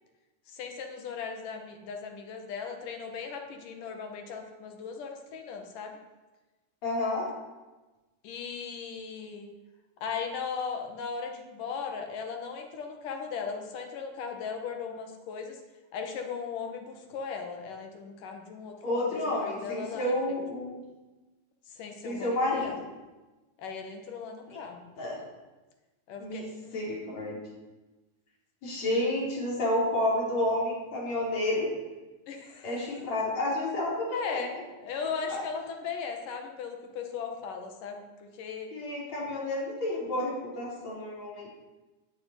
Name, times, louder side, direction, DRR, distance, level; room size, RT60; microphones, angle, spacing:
voice 1, 0.5-6.0 8.2-9.5 10.0-15.6 15.9-20.3 21.7-22.8 23.6-24.8 26.1-27.5 32.3-32.8 34.1-38.7, left 5 dB, 75° left, 4 dB, 3.3 m, -38 dB
voice 2, 6.8-7.3 18.8-20.8 22.0-22.7 24.5-24.6 25.0-25.2 26.2-27.4 28.6-31.7 32.6-34.6 35.3-35.4 38.7-41.5, left 1 dB, 55° left, -4 dB, 5.4 m, -30 dB
10.5 x 10.0 x 10.0 m, 1.2 s
omnidirectional pair, 3.8 m